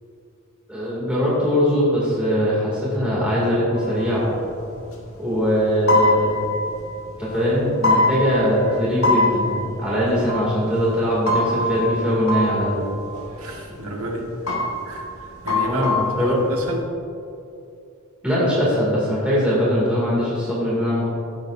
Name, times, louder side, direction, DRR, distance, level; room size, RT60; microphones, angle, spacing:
voice 1, 0.7-4.3 5.2-6.4 7.2-12.8 15.7-16.4 18.2-21.1, equal, 5° right, -8 dB, 2.2 m, -21 dB
sound 1, 3.7-5.0 5.3-5.4 5.8-7.4 7.8-8.8 9.0-13.5 13.8-14.1 14.3-16.7, left 2 dB, 75° left, 1.6 m, -24 dB
voice 2, 13.4-16.9, right 1 dB, 80° right, 0 dB, 1.6 m, -31 dB
16.0 x 7.4 x 2.6 m, 2.6 s
head